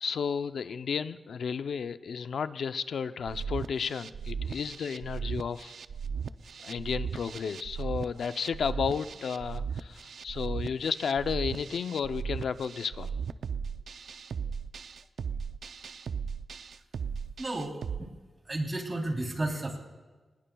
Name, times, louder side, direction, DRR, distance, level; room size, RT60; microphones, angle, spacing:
voice 1, 0.0-5.7 6.6-13.1, left 6 dB, 85° left, 11 dB, 0.5 m, -33 dB
sound 1, 3.3-18.0, right 6 dB, 80° right, 0.5 m, -37 dB
voice 2, 17.4-18.1 18.4-19.8, right 1 dB, 30° right, 2 dB, 3.3 m, -33 dB
25.5 x 20.5 x 2.3 m, 1.3 s
wide cardioid pair, 90°, 0 cm